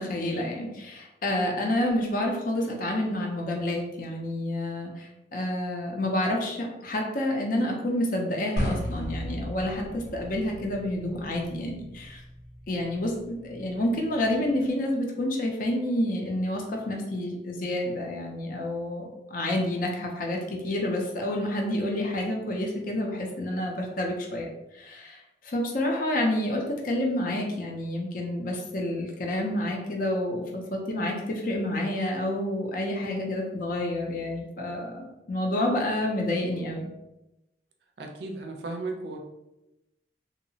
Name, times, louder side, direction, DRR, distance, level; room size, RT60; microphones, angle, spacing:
voice 1, 0.0-12.2 12.7-24.5 24.7-36.9, left 1 dB, 50° left, 0 dB, 0.5 m, -29 dB
sound 1, 8.6-14.7, equal, 85° left, 0.8 m, -37 dB
voice 2, 38.0-39.2, right 2 dB, 65° right, 3 dB, 0.4 m, -35 dB
2.7 x 2.0 x 2.6 m, 0.94 s
head